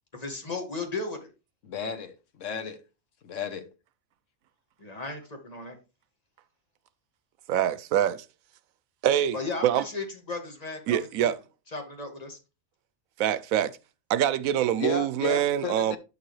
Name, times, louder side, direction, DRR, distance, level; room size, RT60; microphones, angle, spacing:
voice 1, 0.1-1.3 4.8-5.8 9.3-11.3 11.7-12.4, left 3 dB, 30° left, 1.9 m, -35 dB
voice 2, 1.6-2.8 3.2-3.7 14.8-16.0, left 6 dB, 65° left, 1.4 m, -34 dB
voice 3, 7.5-8.2 9.0-9.4 9.6-9.8 10.9-11.4 13.2-13.7 14.1-16.0, right 10 dB, 85° right, 1.0 m, -24 dB
9.4 x 6.8 x 3.2 m
omnidirectional pair, 1.4 m